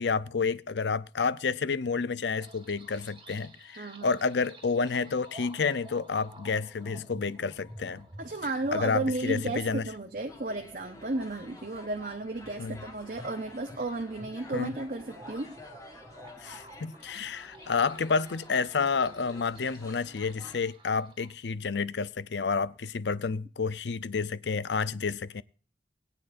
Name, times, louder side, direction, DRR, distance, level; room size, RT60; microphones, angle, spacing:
voice 1, 0.0-8.1 8.7-9.8 12.6-12.8 14.5-14.7 16.4-25.4, left 5 dB, 85° left, 0.6 m, -30 dB
sound 1, 2.3-21.3, right 1 dB, 30° right, 1.7 m, -52 dB
voice 2, 3.8-4.2 8.2-15.6, right 2 dB, 50° right, 0.9 m, -33 dB
sound 2, 10.3-20.6, left 2 dB, 20° left, 1.6 m, -50 dB
21.0 x 8.9 x 2.6 m
head